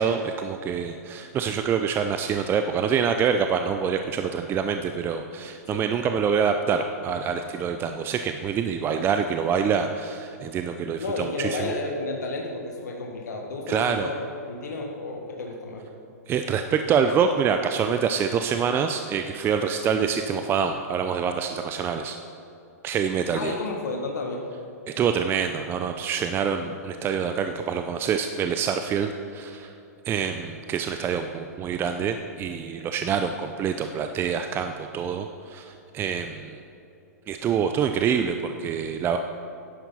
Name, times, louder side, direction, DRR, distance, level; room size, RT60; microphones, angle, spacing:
voice 1, 0.0-11.7 13.7-14.1 16.3-22.2 22.8-23.5 24.9-29.7 30.1-36.6 37.3-39.2, right 7 dB, 25° right, 7 dB, 0.5 m, -26 dB
voice 2, 11.0-14.2 14.5-15.9 23.3-24.5, left 3 dB, 80° left, 1 dB, 1.4 m, -32 dB
10.5 x 10.0 x 5.6 m, 2.7 s
hypercardioid pair, 115°, 9 cm